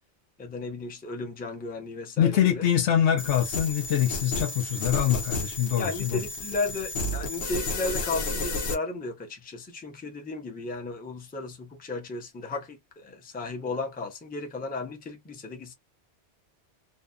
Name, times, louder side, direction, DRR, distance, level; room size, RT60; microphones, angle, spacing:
voice 1, 0.4-2.6 5.8-15.7, left 3 dB, 10° left, 0.4 m, -34 dB
voice 2, 2.2-6.2, left 10 dB, 90° left, 0.9 m, -24 dB
sound 1, 3.2-8.7, left 2 dB, 60° left, 0.9 m, -32 dB
2.6 x 2.3 x 2.2 m
omnidirectional pair, 1.1 m